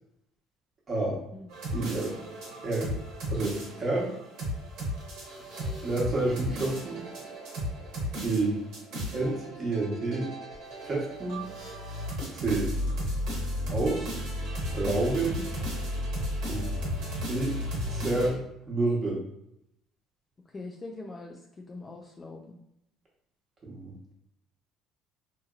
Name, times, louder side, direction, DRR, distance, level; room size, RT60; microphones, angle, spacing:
voice 1, 0.9-1.2 1.7-2.1 2.6-2.9 3.3-4.1 5.8-7.0 8.2-8.6 9.1-10.3 10.8-11.4 12.3-12.7 13.7-14.2 14.7-15.4 16.4-16.6 17.3-17.6 17.9-18.4 18.7-19.2 23.6-24.1, right 2 dB, 35° right, -4 dB, 1.1 m, -29 dB
sound 1, 1.5-18.3, equal, 70° right, 1.1 m, -34 dB
voice 2, 20.5-22.6, left 3 dB, 25° left, 0 dB, 0.3 m, -42 dB
2.8 x 2.7 x 2.4 m, 0.79 s
supercardioid pair, 95°, 0 cm